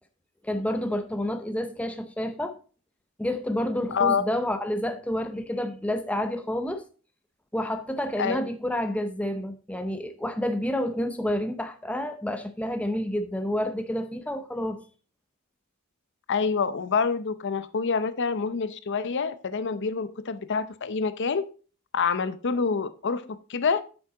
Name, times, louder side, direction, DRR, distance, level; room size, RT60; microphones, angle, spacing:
voice 1, 0.4-2.6 3.2-6.8 7.5-14.8, left 1 dB, 5° left, 0.6 m, -29 dB
voice 2, 3.9-4.2 8.2-8.4 16.3-21.4 21.9-23.2 23.5-23.8, left 5 dB, 55° left, 0.6 m, -26 dB
8.3 x 7.1 x 3.8 m
head